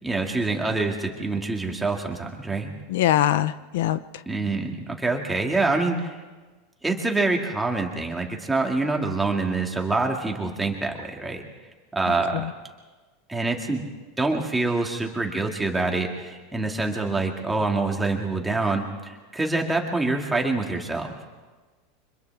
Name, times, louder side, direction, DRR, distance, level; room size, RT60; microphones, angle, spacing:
voice 1, 0.0-2.7 4.3-6.2 6.8-11.4 11.9-12.5 13.3-13.8 14.2-21.3, right 3 dB, 5° right, 1 dB, 2.1 m, -26 dB
voice 2, 2.9-4.2 12.1-12.5, left 12 dB, 75° left, 14 dB, 0.6 m, -24 dB
30.0 x 25.5 x 3.5 m, 1.3 s
supercardioid pair, 165°, 0 cm